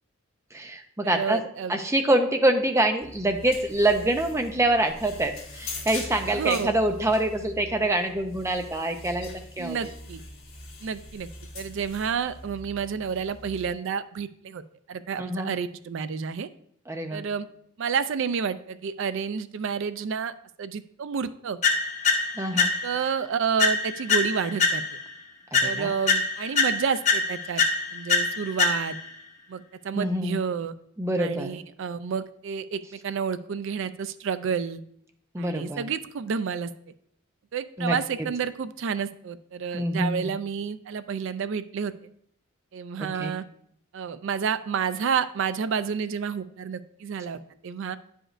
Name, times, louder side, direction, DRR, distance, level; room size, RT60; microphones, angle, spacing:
voice 1, 0.5-1.4 1.7-9.3 9.6-9.9 15.2-15.5 16.9-17.2 22.4-22.7 25.5-25.9 29.9-30.4 31.0-31.6 35.3-35.8 37.8-38.0 39.7-40.3 43.2-43.3, right 1 dB, 15° right, 5 dB, 0.5 m, -25 dB
voice 2, 1.0-1.8 6.3-6.7 9.6-10.2 10.8-11.3 11.5-14.6 14.9-16.5 17.1-17.5 17.8-21.6 22.8-24.8 25.6-27.6 27.9-29.0 29.5-30.8 31.2-34.8 35.4-36.7 37.5-41.9 42.7-43.4 43.9-48.0, right 6 dB, 65° right, 13 dB, 0.4 m, -30 dB
sound 1, 3.0-13.7, left 2 dB, 80° left, 1.6 m, -42 dB
sound 2, 21.6-23.1 23.6-25.1 25.5-29.1, left 4 dB, 35° left, 0.8 m, -25 dB
9.8 x 5.1 x 2.5 m, 0.68 s
head